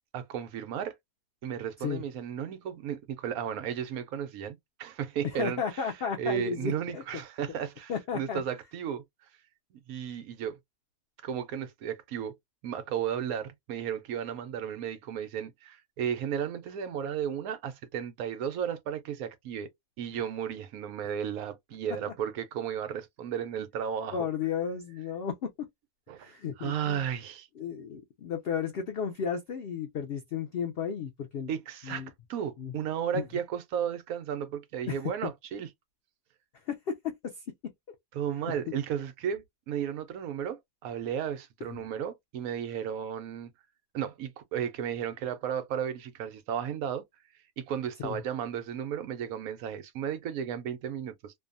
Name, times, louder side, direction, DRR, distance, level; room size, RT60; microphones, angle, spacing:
voice 1, 0.1-1.0 1.4-5.6 6.2-9.0 9.7-10.6 11.2-12.3 12.6-19.7 20.0-24.3 26.1-27.5 31.5-32.0 32.3-35.7 38.1-43.5 43.9-47.0 47.6-51.3, right 8 dB, 75° right, 1.0 m, -34 dB
voice 2, 5.3-7.0 7.9-8.4 24.1-25.5 26.2-27.0 27.6-31.5 31.8-32.1 32.6-32.7 33.1-33.3 34.9-35.0 36.7-37.7 38.5-38.6 41.7-41.8 48.0-48.2, left 7 dB, 90° left, 0.5 m, -33 dB
2.6 x 2.2 x 2.5 m
omnidirectional pair, 1.6 m